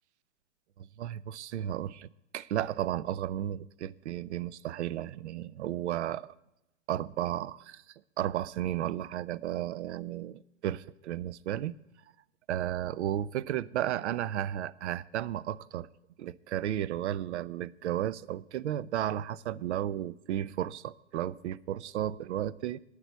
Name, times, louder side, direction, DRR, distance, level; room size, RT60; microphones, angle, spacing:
voice 1, 0.8-6.3 6.9-7.8 8.2-11.7 12.5-15.9 16.2-22.8, right 12 dB, 70° right, 0.5 m, -33 dB
8.9 x 8.1 x 8.1 m
hypercardioid pair, 125°, 36 cm